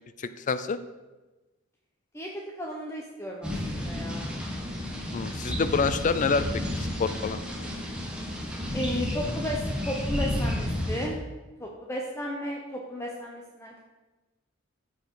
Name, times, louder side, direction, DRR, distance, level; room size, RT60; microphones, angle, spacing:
voice 1, 0.2-0.8 5.1-6.4 6.7-7.4, left 5 dB, 40° left, 12 dB, 0.4 m, -27 dB
voice 2, 2.6-4.3 8.7-11.2 11.6-13.8, equal, 15° left, -1 dB, 0.8 m, -34 dB
sound 1, 3.4-11.1, left 1 dB, 5° right, 1.4 m, -31 dB
13.5 x 4.7 x 4.6 m, 1.2 s
head